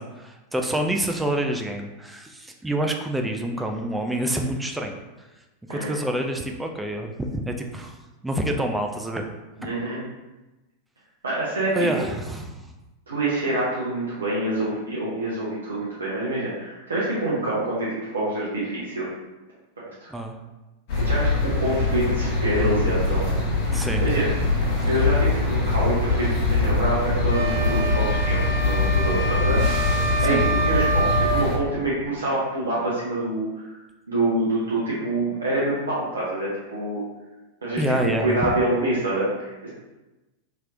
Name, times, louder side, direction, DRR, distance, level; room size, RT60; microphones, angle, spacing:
voice 1, 0.0-5.0 5.7-8.0 8.2-9.3 11.7-12.7 20.1-20.4 23.7-24.0 30.2-30.4 37.8-38.5, right 1 dB, 5° right, 3 dB, 0.3 m, -27 dB
voice 2, 9.6-10.0 11.2-12.1 13.1-19.1 19.8-20.1 21.0-23.3 24.0-24.3 24.9-29.6 30.2-33.7 34.1-37.0 37.6-39.7, right 1 dB, 70° right, -7 dB, 0.7 m, -26 dB
sound 1, 20.9-31.6, left 3 dB, 50° left, 1.0 m, -23 dB
sound 2, 27.3-31.5, right 2 dB, 65° left, 0.7 m, -27 dB
3.1 x 2.9 x 2.4 m, 1.1 s
figure-of-eight pair, 90°, 0 cm